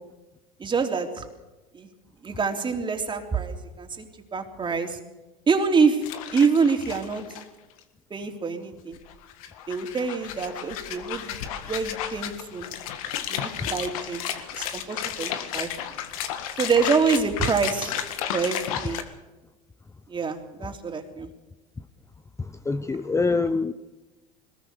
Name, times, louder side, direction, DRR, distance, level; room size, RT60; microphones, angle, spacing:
voice 1, 0.6-1.2 1.7-1.9 2.2-5.0 5.5-6.0 6.3-7.2 8.1-9.0 9.7-12.7 13.3-14.2 14.5-15.7 16.6-17.9 18.3-19.0 20.1-21.3, right 5 dB, 25° right, 4 dB, 3.4 m, -26 dB
sound 1, 6.0-7.4 7.8-7.9 8.9-19.0, left 10 dB, 80° left, 1.8 m, -33 dB
voice 2, 22.4-23.7, left 3 dB, 15° left, 11 dB, 0.8 m, -25 dB
21.5 x 19.5 x 6.8 m, 1.1 s
hypercardioid pair, 85°, 18 cm